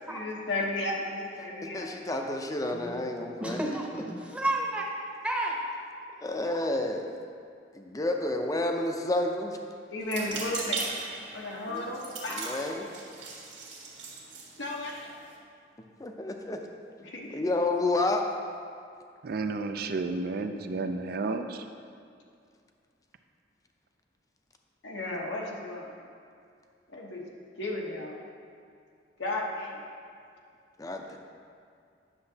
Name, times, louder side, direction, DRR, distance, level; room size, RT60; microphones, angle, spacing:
voice 1, 0.1-1.9 9.9-10.8 11.3-12.9 14.6-15.1 17.0-17.5 24.8-25.9 26.9-28.2 29.2-29.8, left 2 dB, 90° left, -2 dB, 1.1 m, -34 dB
voice 2, 1.7-3.6 4.1-4.2 6.2-7.1 7.7-9.6 11.7-11.9 12.3-12.9 16.0-16.6 17.3-18.3 30.8-31.2, left 2 dB, 20° left, 3 dB, 0.5 m, -30 dB
voice 3, 3.4-4.9 5.2-5.5, right 2 dB, 5° right, -2 dB, 0.8 m, -31 dB
sound 1, 10.0-15.4, right 4 dB, 85° right, 1.5 m, -39 dB
voice 4, 19.2-21.7, right 3 dB, 55° right, 7 dB, 0.4 m, -32 dB
9.7 x 6.7 x 2.8 m, 2.4 s
head